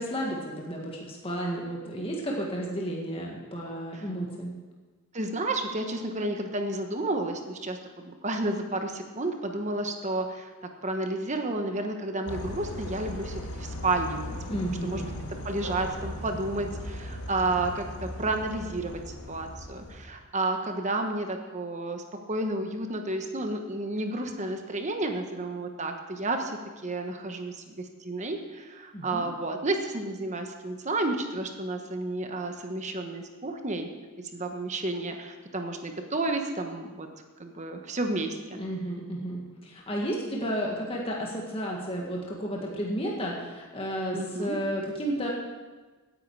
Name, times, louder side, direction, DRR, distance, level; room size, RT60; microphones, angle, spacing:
voice 1, 0.0-4.5 14.5-15.1 28.9-29.3 38.6-45.3, equal, 25° left, -2 dB, 1.8 m, -32 dB
voice 2, 5.1-10.5 10.8-15.1 15.4-33.9 34.3-37.1 37.4-38.6 44.1-44.6, right 2 dB, 30° right, 4 dB, 1.2 m, -31 dB
sound 1, 12.3-20.1, left 1 dB, 85° left, 1.9 m, -38 dB
16.5 x 9.4 x 4.8 m, 1.3 s
head